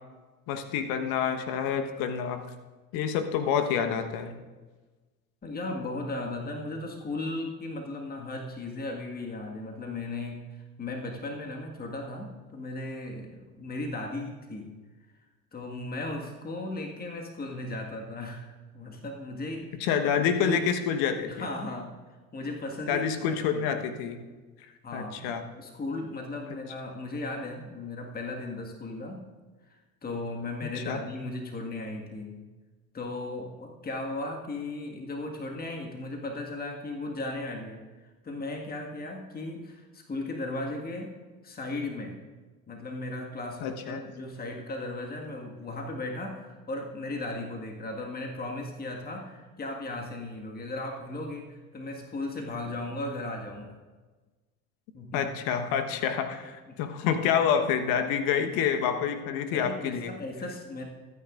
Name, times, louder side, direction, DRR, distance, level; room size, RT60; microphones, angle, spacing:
voice 1, 0.5-2.4 2.9-4.3 19.8-21.4 22.9-24.2 24.9-25.4 30.8-31.0 43.6-44.0 55.1-60.1, left 7 dB, 55° left, 8 dB, 1.3 m, -28 dB
voice 2, 5.4-14.7 15.5-19.8 20.2-20.6 21.3-22.0 22.3-23.7 24.8-29.3 29.7-32.4 32.9-41.2 41.4-42.2 42.7-53.8 54.9-55.3 56.7-57.1 59.5-60.8, left 2 dB, 20° left, 1 dB, 1.9 m, -36 dB
24.0 x 9.5 x 2.6 m, 1.3 s
figure-of-eight pair, 65°, 43 cm